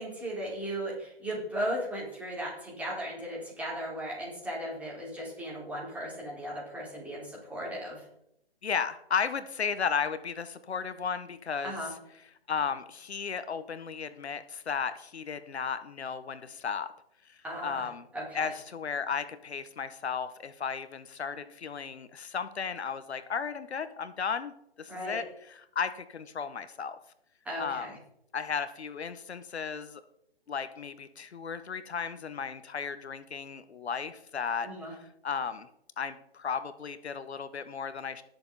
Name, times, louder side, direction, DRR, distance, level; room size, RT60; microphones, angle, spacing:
voice 1, 0.0-8.0 11.6-11.9 17.4-17.9 18.1-18.5 24.9-25.2 27.4-28.0 34.6-34.9, equal, 5° right, -6 dB, 4.3 m, -36 dB
voice 2, 8.6-11.7 12.5-16.9 17.3-18.0 18.3-27.0 27.6-27.9 28.3-30.0 30.5-34.7 35.0-35.7 36.0-38.2, left 6 dB, 80° left, 12 dB, 1.0 m, -34 dB
18.5 x 6.9 x 4.0 m, 0.77 s
hypercardioid pair, 145°, 32 cm